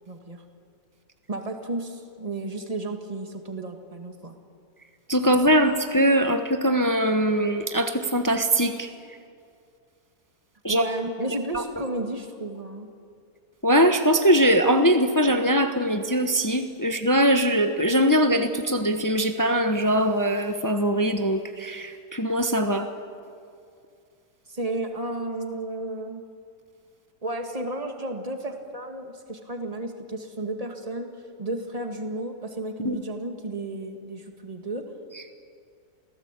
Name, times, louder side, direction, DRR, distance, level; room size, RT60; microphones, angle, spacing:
voice 1, 0.1-0.4 1.3-4.4 10.7-12.9 24.5-26.2 27.2-31.1 31.4-34.9, right 2 dB, 25° right, 5 dB, 2.0 m, -33 dB
voice 2, 5.1-8.9 10.6-10.8 11.5-11.6 13.6-22.9 32.8-33.0, equal, 15° left, 7 dB, 0.9 m, -21 dB
28.5 x 17.0 x 8.3 m, 2.4 s
omnidirectional pair, 1.7 m